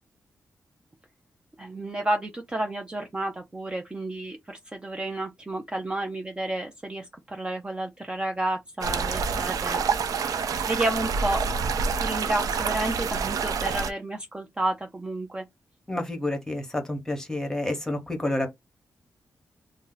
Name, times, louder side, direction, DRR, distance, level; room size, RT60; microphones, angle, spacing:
voice 1, 1.6-9.8 10.7-11.4 12.0-15.4, right 1 dB, 15° right, 0.4 m, -31 dB
sound 1, 8.8-13.9, right 5 dB, 80° right, 0.4 m, -27 dB
voice 2, 15.9-18.5, left 1 dB, 10° left, 1.0 m, -29 dB
2.7 x 2.0 x 3.8 m
wide cardioid pair, 125°, 6 cm